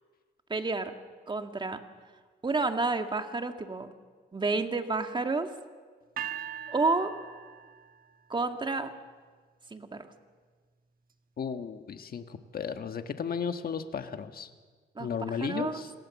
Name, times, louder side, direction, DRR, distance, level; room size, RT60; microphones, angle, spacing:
voice 1, 0.5-0.9 1.3-1.8 2.4-3.9 4.3-5.5 6.7-7.1 8.3-8.9 9.7-10.1 15.0-15.1 15.4-15.8, right 3 dB, 25° right, 6 dB, 1.9 m, -30 dB
sound 1, 6.2-8.3, right 9 dB, 45° right, 1.4 m, -40 dB
voice 2, 11.4-14.5 15.0-15.9, left 6 dB, 50° left, 8 dB, 1.4 m, -34 dB
27.0 x 17.0 x 7.2 m, 1.5 s
cardioid pair, 90°, 20 cm